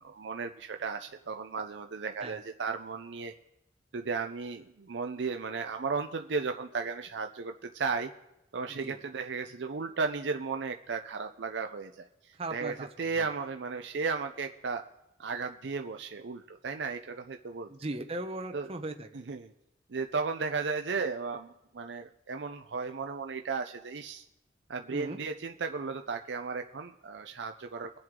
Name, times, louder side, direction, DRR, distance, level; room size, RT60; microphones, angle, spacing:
voice 1, 0.0-3.3 3.9-8.1 8.5-14.8 15.2-17.7 18.5-18.6 19.3-19.5 19.9-24.2 24.7-27.9, right 4 dB, 80° right, 5 dB, 0.6 m, -35 dB
voice 2, 12.3-12.9 13.2-13.3 17.7-19.3 24.9-25.2, right 2 dB, 35° right, 5 dB, 0.7 m, -38 dB
23.0 x 7.7 x 3.7 m, 0.92 s
head